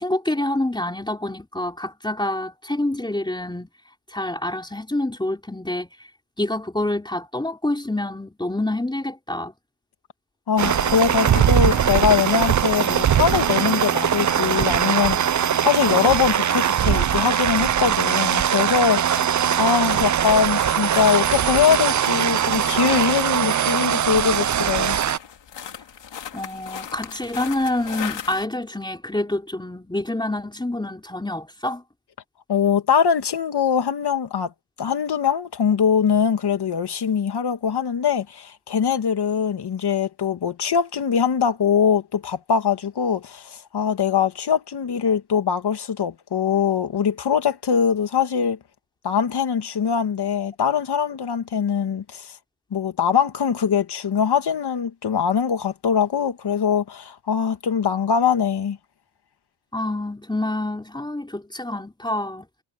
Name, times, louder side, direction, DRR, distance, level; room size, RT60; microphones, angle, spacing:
voice 1, 0.0-3.7 4.1-5.9 6.4-9.5 26.3-31.8 59.7-62.5, left 1 dB, 10° left, 4.0 m, -27 dB
voice 2, 10.5-25.0 32.5-34.5 34.8-48.6 49.0-52.3 52.7-58.8, left 7 dB, 65° left, 2.2 m, -22 dB
sound 1, 10.6-28.5, left 8 dB, 90° left, 3.0 m, -39 dB
sound 2, 10.6-25.2, right 9 dB, 45° right, 0.6 m, -21 dB
wide cardioid pair, 110°, 42 cm